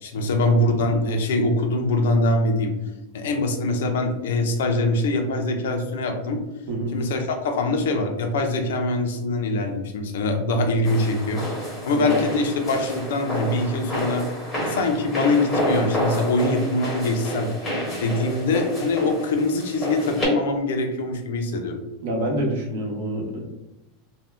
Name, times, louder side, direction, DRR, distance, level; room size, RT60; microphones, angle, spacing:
voice 1, 0.0-2.7 3.1-6.4 6.9-11.4 11.8-14.3 14.6-17.5 18.0-21.8, left 2 dB, 90° left, 4 dB, 0.5 m, -23 dB
sound 1, 10.8-20.3, equal, 15° left, 1.2 m, -29 dB
voice 2, 22.0-23.4, right 1 dB, 65° right, 0 dB, 0.8 m, -27 dB
2.7 x 2.1 x 3.3 m, 1.0 s
supercardioid pair, 160°, 0 cm